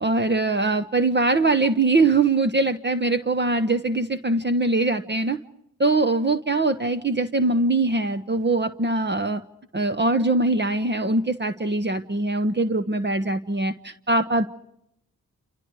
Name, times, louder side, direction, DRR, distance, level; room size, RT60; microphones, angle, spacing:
voice 1, 0.0-5.4 5.8-9.4 9.7-14.5, right 2 dB, 30° right, 11 dB, 1.2 m, -22 dB
28.5 x 28.0 x 4.9 m, 0.78 s
supercardioid pair, 40°, 37 cm